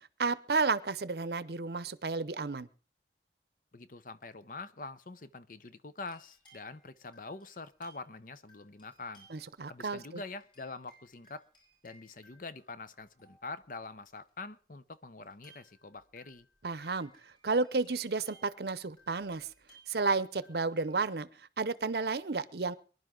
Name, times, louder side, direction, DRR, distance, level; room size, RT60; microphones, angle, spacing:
voice 1, 0.2-2.7 9.3-10.2 16.6-19.5 19.9-22.8, right 4 dB, 60° right, 16 dB, 0.7 m, -32 dB
voice 2, 3.7-9.3 9.7-11.4 11.8-16.5, left 3 dB, 50° left, 13 dB, 0.8 m, -45 dB
sound 1, 6.0-8.2 8.5-9.6 9.9-13.7 14.3-14.4 15.2-21.1, right 1 dB, 30° left, 7.8 m, -64 dB
23.5 x 11.0 x 3.8 m, 0.40 s
head